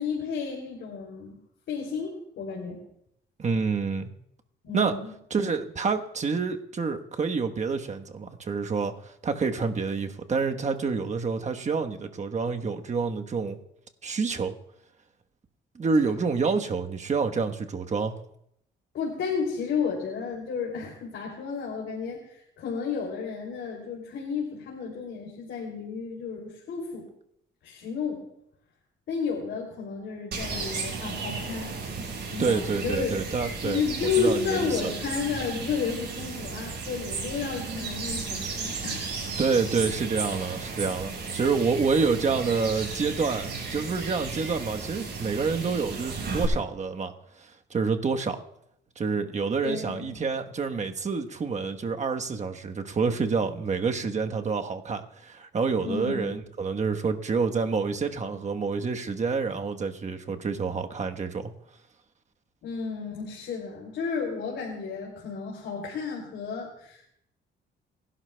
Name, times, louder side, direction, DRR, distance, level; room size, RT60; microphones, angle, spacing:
voice 1, 0.0-1.4 1.7-2.8 4.6-5.1 18.9-27.1 27.6-28.2 29.1-31.8 32.3-33.1 33.6-39.1 40.9-41.3 49.6-50.1 55.8-56.4 62.6-67.1, left 5 dB, 70° left, -2 dB, 2.9 m, -32 dB
voice 2, 3.4-4.1 4.7-4.9 5.3-13.6 14.0-14.5 15.7-18.1 32.4-33.8 34.2-34.9 36.6-36.7 39.4-47.1 47.4-48.4 49.0-61.5, right 4 dB, 35° right, 5 dB, 1.2 m, -28 dB
sound 1, 30.3-46.4, right 4 dB, 60° right, 5.5 m, -34 dB
30.0 x 11.5 x 2.3 m, 0.75 s
cardioid pair, 90°, 20 cm